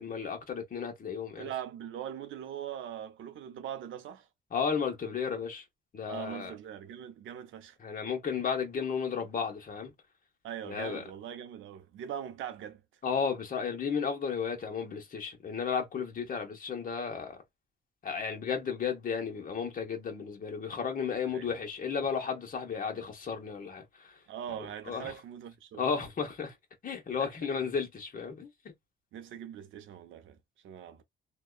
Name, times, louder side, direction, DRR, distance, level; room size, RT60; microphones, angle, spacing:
voice 1, 0.0-1.5 4.5-5.6 5.9-6.5 7.8-9.9 10.6-11.0 13.0-17.4 18.0-24.1 24.9-25.1 25.8-26.5 26.8-28.5, left 6 dB, 45° left, 1.1 m, -33 dB
voice 2, 1.4-4.3 6.1-7.8 10.4-12.8 21.2-21.5 24.3-25.9 27.2-27.3 29.1-30.4 30.6-31.0, right 10 dB, 80° right, 0.7 m, -41 dB
2.8 x 2.2 x 2.3 m
cardioid pair, 90°, 20 cm